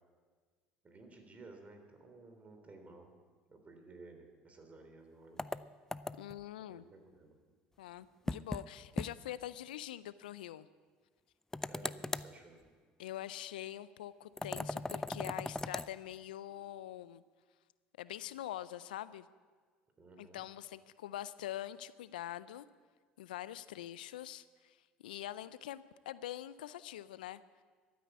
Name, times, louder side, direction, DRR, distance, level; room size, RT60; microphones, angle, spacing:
voice 1, 0.8-3.1 3.5-5.6 6.6-7.4 11.6-12.6 20.0-20.4, right 3 dB, 30° right, 5 dB, 3.4 m, -55 dB
sound 1, 5.4-6.4 8.3-8.7 9.0-9.1 9.4-9.5 11.5-12.3 14.4-15.9, left 2 dB, 10° left, 0.5 m, -38 dB
voice 2, 6.2-6.8 7.8-10.7 13.0-17.2 18.0-19.3 20.2-22.7 23.2-27.4, left 13 dB, 85° left, 17 dB, 0.4 m, -44 dB
13.0 x 9.4 x 8.2 m, 1.5 s
hypercardioid pair, 70°, 5 cm